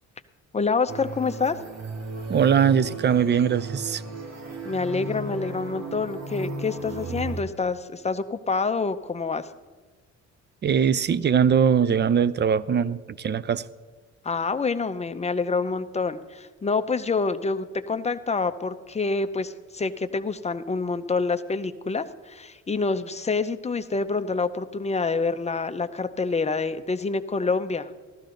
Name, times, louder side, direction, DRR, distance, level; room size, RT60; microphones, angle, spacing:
voice 1, 0.5-1.6 4.6-9.5 14.2-27.9, left 4 dB, 20° left, 9 dB, 0.6 m, -27 dB
sound 1, 0.9-7.4, right 2 dB, 60° right, 1.9 m, -35 dB
voice 2, 2.3-4.0 10.6-13.6, right 7 dB, 35° right, 18 dB, 0.5 m, -21 dB
14.5 x 13.0 x 3.9 m, 1.3 s
cardioid pair, 90°, 30 cm